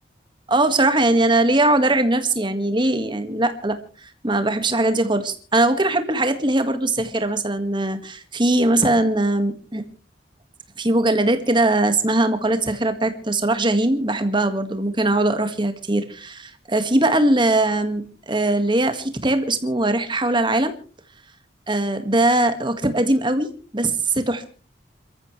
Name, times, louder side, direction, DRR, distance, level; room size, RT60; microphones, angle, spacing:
voice 1, 0.5-9.9 10.8-20.7 21.7-24.5, right 2 dB, 25° right, 8 dB, 1.8 m, -21 dB
28.0 x 14.0 x 3.3 m, 0.39 s
head